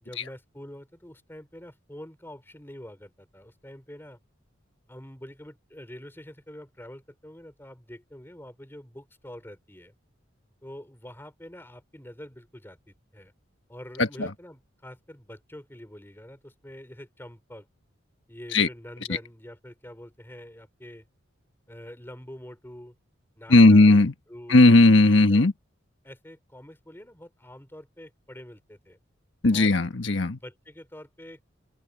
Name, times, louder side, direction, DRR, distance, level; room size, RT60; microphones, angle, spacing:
voice 1, 0.0-4.2 4.9-9.9 10.6-13.3 13.7-17.7 18.3-21.1 21.7-23.0 23.4-24.0 24.3-24.7 25.3-25.5 26.0-29.0 29.5-29.8 30.3-31.4, left 1 dB, 10° left, 3.3 m, -45 dB
voice 2, 14.0-14.3 18.5-18.7 19.1-19.2 23.5-24.1 24.5-25.5 29.4-30.4, left 2 dB, 65° left, 1.4 m, -17 dB
open air
head